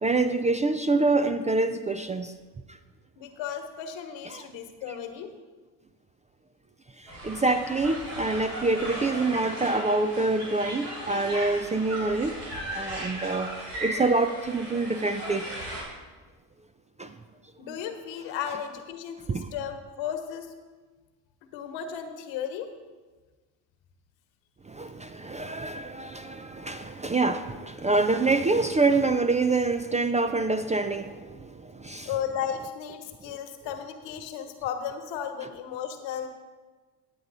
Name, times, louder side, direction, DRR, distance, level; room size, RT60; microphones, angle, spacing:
voice 1, 0.0-2.3 4.3-4.5 4.9-5.0 7.0-12.4 12.7-15.5 17.0-17.1 19.3-19.5 24.7-32.1, right 3 dB, 15° right, 9 dB, 0.3 m, -26 dB
voice 2, 3.2-5.3 17.6-20.5 21.5-22.7 32.0-36.3, left 8 dB, 75° left, 7 dB, 1.2 m, -34 dB
sound 1, 7.1-15.8, right 1 dB, 75° right, 3.3 m, -37 dB
10.0 x 8.2 x 4.0 m, 1.3 s
supercardioid pair, 65°, 45 cm